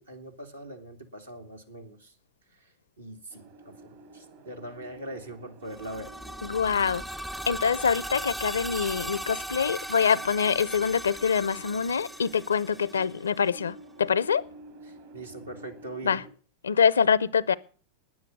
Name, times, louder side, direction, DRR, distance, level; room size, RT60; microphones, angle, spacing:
voice 1, 0.0-2.1 3.0-6.1 15.1-16.2, right 1 dB, 85° right, 2.5 m, -41 dB
sound 1, 3.3-16.3, right 3 dB, 55° right, 2.0 m, -51 dB
sound 2, 5.7-13.5, right 1 dB, 5° right, 0.5 m, -38 dB
voice 2, 6.4-7.0 7.5-14.4 16.0-16.2 16.6-17.5, left 6 dB, 75° left, 0.6 m, -25 dB
10.0 x 9.6 x 9.3 m
figure-of-eight pair, 90°, 0 cm